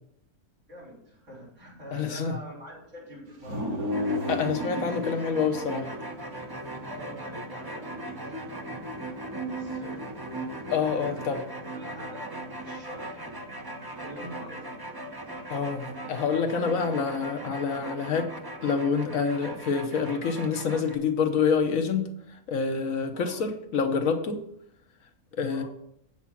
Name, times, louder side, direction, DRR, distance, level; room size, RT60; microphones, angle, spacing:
voice 1, 0.7-3.9 6.9-8.5 9.0-10.0 10.6-11.2 11.7-13.3 13.9-14.7 16.5-16.7 23.1-23.4 25.5-25.7, right 1 dB, 55° right, -6 dB, 4.7 m, -45 dB
voice 2, 1.9-2.4 4.3-5.9 10.7-11.4 15.5-18.3 18.6-24.4 25.3-25.6, left 5 dB, 65° left, 5 dB, 1.2 m, -27 dB
sound 1, 3.4-16.2, left 1 dB, 80° right, 2.2 m, -39 dB
sound 2, 3.9-21.0, right 1 dB, 25° right, 0.5 m, -38 dB
8.2 x 6.1 x 5.7 m, 0.76 s
omnidirectional pair, 1.5 m